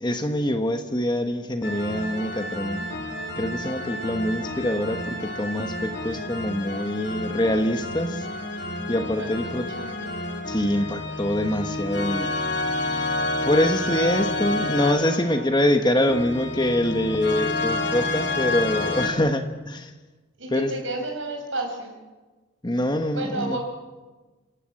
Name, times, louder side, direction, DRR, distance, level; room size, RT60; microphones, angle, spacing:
voice 1, 0.0-2.8 3.4-8.3 8.9-9.6 10.5-12.3 12.8-13.1 13.4-19.9 20.5-20.7 22.6-23.6, left 1 dB, 20° left, 7 dB, 1.2 m, -24 dB
sound 1, 1.6-19.1, left 2 dB, 55° left, 3.2 m, -29 dB
voice 2, 9.0-10.2 20.4-21.9 23.1-23.6, right 2 dB, 70° right, 2 dB, 5.7 m, -32 dB
29.0 x 17.5 x 7.7 m, 1.2 s
head